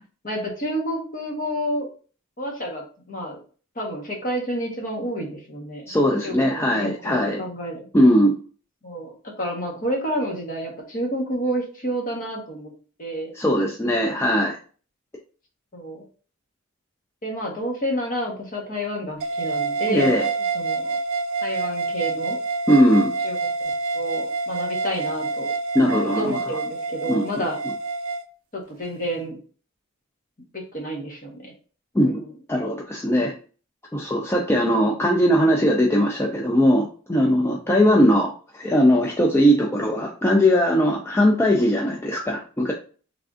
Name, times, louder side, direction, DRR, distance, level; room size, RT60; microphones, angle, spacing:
voice 1, 0.2-1.9 2.4-3.4 3.7-5.9 6.2-7.9 8.8-12.7 13.0-13.3 14.0-14.5 15.7-16.0 17.2-21.0 21.4-22.4 23.2-23.5 23.9-25.5 25.9-27.6 28.5-29.4 30.5-31.5 32.0-32.3 34.7-34.9 37.7-38.2, equal, 40° left, 0 dB, 1.2 m, -30 dB
voice 2, 5.9-7.4 7.9-8.3 13.3-14.6 19.9-20.3 22.7-23.1 25.7-26.3 27.1-27.2 31.9-32.2 32.5-33.3 33.9-42.7, equal, 10° left, 0 dB, 0.4 m, -19 dB
sound 1, 19.2-28.2, right 3 dB, 80° right, 0.4 m, -27 dB
3.6 x 3.4 x 2.5 m, 0.39 s
head